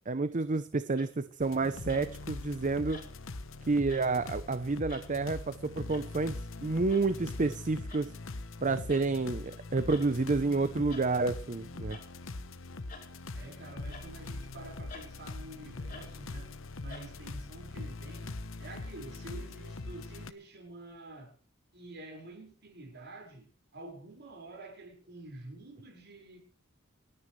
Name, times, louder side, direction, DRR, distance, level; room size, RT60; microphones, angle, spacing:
voice 1, 0.1-3.0 3.6-8.1 8.6-12.0, right 3 dB, 40° right, 0.7 m, -30 dB
sound 1, 1.0-1.3 1.9-2.3 2.9-3.3 3.9-4.1 4.9-5.2 5.9-6.1 6.9-7.1 7.9-8.1 8.9-9.1 9.9-10.1 10.9-11.1 11.9-12.1 12.9-13.1 13.9-14.1 14.9-15.1 15.9-16.1 16.9-17.1, left 4 dB, 40° left, 3.6 m, -50 dB
sound 2, 1.4-20.3, left 2 dB, 65° left, 1.0 m, -42 dB
voice 2, 13.3-21.3 21.7-26.4, right 2 dB, 55° right, 5.1 m, -48 dB
28.0 x 9.8 x 3.2 m
head